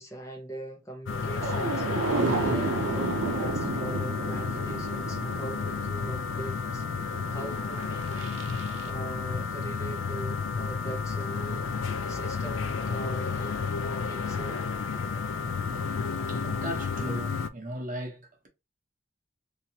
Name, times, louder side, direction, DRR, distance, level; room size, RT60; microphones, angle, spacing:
voice 1, 0.0-8.3 8.8-14.7, right 2 dB, 15° left, 0.8 m, -42 dB
sound 1, 1.1-17.5, left 5 dB, 85° left, 0.4 m, -31 dB
sound 2, 1.4-8.9, right 3 dB, 85° right, 0.6 m, -32 dB
voice 2, 16.3-18.5, right 1 dB, 45° right, 0.9 m, -37 dB
2.9 x 2.7 x 2.8 m
head